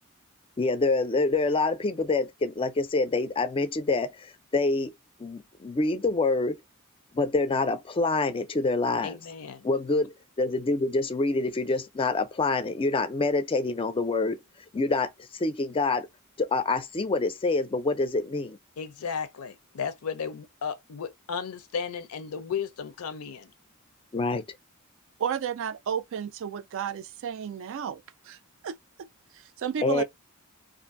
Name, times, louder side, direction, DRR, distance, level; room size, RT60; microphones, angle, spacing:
voice 1, 0.6-4.9 5.2-6.6 7.1-9.2 9.6-14.4 14.7-16.1 16.4-18.6 24.1-24.4 29.8-30.0, left 3 dB, 25° left, 0.4 m, -26 dB
voice 2, 9.0-9.7 18.8-23.5, left 6 dB, 80° left, 0.5 m, -34 dB
voice 3, 25.2-28.4 28.6-29.1 29.3-30.0, right 8 dB, 65° right, 0.3 m, -32 dB
2.5 x 2.5 x 2.5 m
head